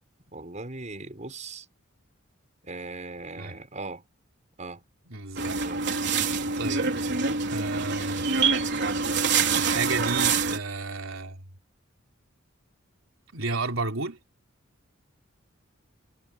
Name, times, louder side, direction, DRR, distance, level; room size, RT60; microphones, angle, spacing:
voice 1, 0.3-1.7 2.6-4.0 4.6-4.8 5.4-5.8, right 3 dB, 35° right, 6.2 m, -39 dB
voice 2, 5.1-5.6 6.5-6.9 7.4-8.3 9.5-11.4 13.3-14.2, right 3 dB, 80° right, 3.7 m, -32 dB
sound 1, 5.4-10.6, right 5 dB, 60° right, 3.9 m, -26 dB
head